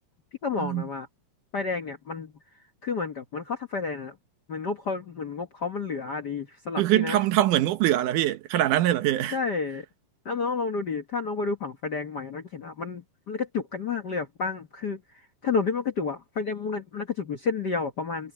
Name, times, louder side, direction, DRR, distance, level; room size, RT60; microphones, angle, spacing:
voice 1, 0.4-1.1 1.5-2.3 2.8-4.2 4.5-7.2 9.3-9.8 10.2-18.3, left 4 dB, 50° left, 1.2 m, -30 dB
voice 2, 6.8-9.4, right 14 dB, 85° right, 2.6 m, -23 dB
omnidirectional pair, 3.5 m